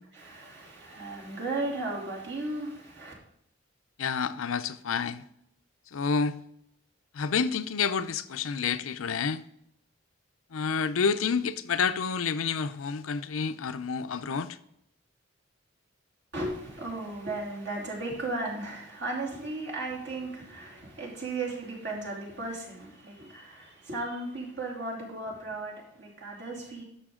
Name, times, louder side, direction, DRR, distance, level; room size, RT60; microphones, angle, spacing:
voice 1, 0.1-3.1 16.3-26.8, right 2 dB, 60° right, 2.9 m, -35 dB
voice 2, 4.0-5.2 5.9-6.4 7.1-9.4 10.5-14.6, left 5 dB, 90° left, 0.5 m, -29 dB
11.5 x 6.6 x 3.7 m
head